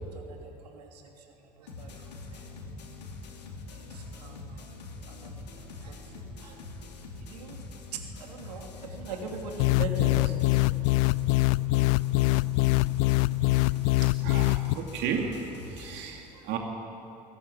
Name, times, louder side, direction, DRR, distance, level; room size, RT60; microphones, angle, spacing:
voice 1, 0.1-2.8 3.7-4.7 5.1-6.6 7.2-7.7 7.9-10.6 16.3-16.5, right 4 dB, 75° right, 2 dB, 2.9 m, -42 dB
sound 1, 1.7-16.0, left 3 dB, 75° left, 2.9 m, -44 dB
sound 2, 9.6-14.7, left 22 dB, 60° left, 0.5 m, -24 dB
voice 2, 13.4-16.6, right 6 dB, 55° right, 2 dB, 2.5 m, -35 dB
22.5 x 18.0 x 9.6 m, 2.9 s
figure-of-eight pair, 60°, 21 cm